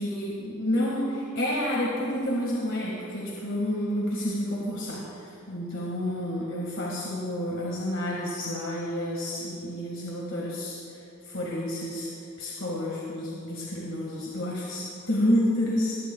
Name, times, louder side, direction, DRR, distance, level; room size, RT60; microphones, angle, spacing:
voice 1, 0.0-10.8 11.2-12.1 12.4-16.0, left 1 dB, 70° left, -4 dB, 1.7 m, -29 dB
18.5 x 16.0 x 2.3 m, 2.7 s
head